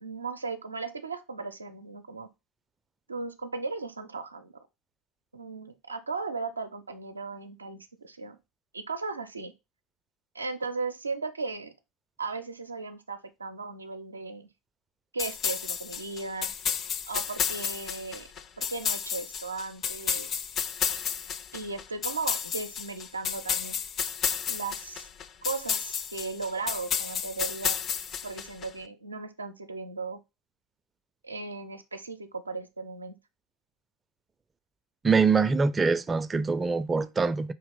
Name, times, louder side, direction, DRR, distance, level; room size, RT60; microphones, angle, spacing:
voice 1, 0.0-2.3 3.1-4.5 5.3-8.4 8.7-9.5 10.3-11.7 12.2-14.5 15.1-16.5 17.1-18.3 18.6-20.4 21.5-23.8 24.5-25.1 25.4-27.8 28.2-30.2 31.2-33.1, right 3 dB, 85° right, 0.5 m, -36 dB
sound 1, 15.2-28.7, left 7 dB, 40° left, 0.4 m, -32 dB
voice 2, 35.0-37.5, right 4 dB, 20° right, 0.4 m, -24 dB
4.6 x 2.9 x 3.6 m
figure-of-eight pair, 75°, 0 cm